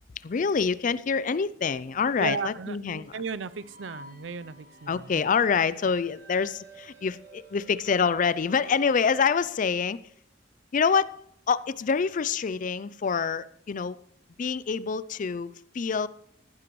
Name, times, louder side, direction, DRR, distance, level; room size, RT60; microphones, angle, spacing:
voice 1, 0.2-3.0 4.9-10.0 10.7-14.0 14.4-16.1, left 6 dB, 45° left, 0.4 m, -26 dB
voice 2, 2.2-5.2, right 5 dB, 85° right, 0.5 m, -35 dB
sound 1, 2.9-9.6, right 1 dB, 45° right, 5.3 m, -52 dB
14.5 x 12.0 x 3.1 m
head